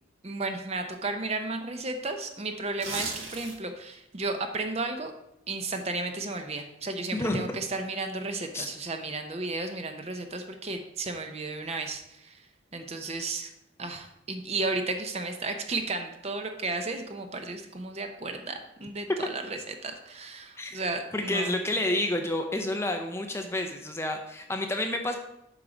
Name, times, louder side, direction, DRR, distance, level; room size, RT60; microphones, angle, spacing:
voice 1, 0.2-5.1 5.5-12.5 12.7-13.5 13.8-21.5, right 3 dB, 30° right, 6 dB, 0.6 m, -33 dB
sound 1, 2.7-3.8 4.2-4.4, right 3 dB, 80° right, 1.3 m, -36 dB
voice 2, 7.1-7.6 8.5-8.7 20.6-20.8 21.1-25.2, left 1 dB, 15° left, 4 dB, 0.5 m, -29 dB
7.7 x 4.6 x 5.0 m, 0.83 s
head